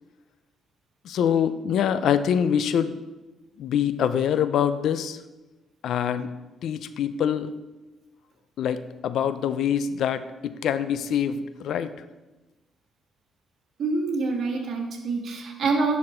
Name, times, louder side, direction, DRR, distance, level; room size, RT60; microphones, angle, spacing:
voice 1, 1.0-3.0 3.6-5.2 5.8-6.3 6.6-7.5 8.6-11.9, left 8 dB, 75° left, 13 dB, 0.4 m, -25 dB
voice 2, 13.8-16.0, right 3 dB, 60° right, 0 dB, 1.7 m, -26 dB
10.5 x 4.2 x 4.4 m, 1.1 s
cardioid pair, 90°, 0 cm